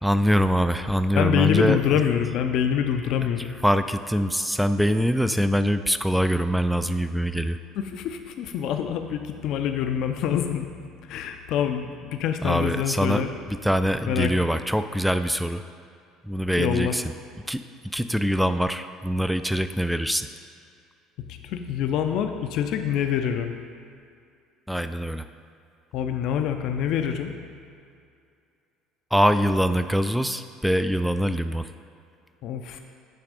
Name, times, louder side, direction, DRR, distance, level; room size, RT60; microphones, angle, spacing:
voice 1, 0.0-1.8 3.2-3.3 3.6-7.6 12.4-15.6 16.2-17.1 17.5-17.6 17.9-20.3 24.7-25.3 29.1-31.7, equal, ahead, 10 dB, 0.3 m, -23 dB
voice 2, 1.1-3.5 7.8-10.7 11.1-13.3 14.1-14.5 16.6-16.9 21.2-23.5 25.9-27.3 32.4-32.8, left 9 dB, 65° left, 6 dB, 0.5 m, -26 dB
9.0 x 3.3 x 5.0 m, 2.4 s
hypercardioid pair, 75°, 0 cm